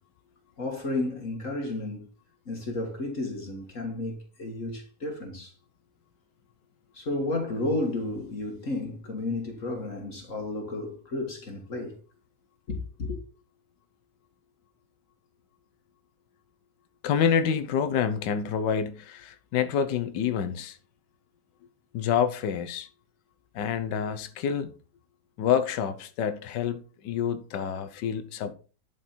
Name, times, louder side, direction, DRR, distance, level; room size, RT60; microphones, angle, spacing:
voice 1, 0.6-2.1 2.5-5.5 6.9-12.0 12.7-13.2, left 2 dB, 50° left, 1.9 m, -32 dB
voice 2, 17.0-20.8 21.9-22.9 23.5-24.7 25.4-28.5, left 8 dB, 80° left, 1.5 m, -27 dB
11.5 x 5.3 x 4.4 m
omnidirectional pair, 1.9 m